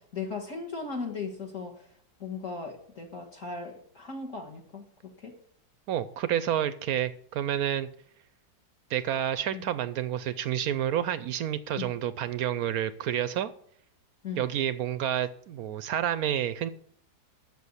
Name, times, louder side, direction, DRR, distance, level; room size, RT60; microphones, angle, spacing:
voice 1, 0.0-1.8 2.2-5.3 9.5-9.6 11.8-11.9 14.2-14.5, left 4 dB, 45° left, -1 dB, 1.6 m, -37 dB
voice 2, 5.9-7.9 8.9-13.5 14.4-16.7, right 10 dB, 75° right, 14 dB, 0.9 m, -29 dB
8.4 x 7.0 x 8.2 m, 0.63 s
omnidirectional pair, 2.0 m